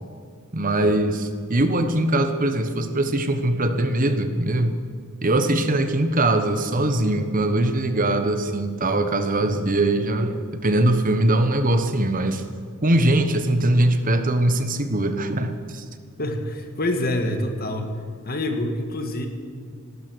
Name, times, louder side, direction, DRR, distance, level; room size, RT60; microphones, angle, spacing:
voice 1, 0.5-4.7 5.2-12.4 12.8-15.8, right 1 dB, 40° right, 8 dB, 1.2 m, -21 dB
voice 2, 16.2-17.9 18.2-19.3, left 1 dB, 45° left, 5 dB, 1.8 m, -26 dB
18.0 x 13.0 x 6.3 m, 2.1 s
head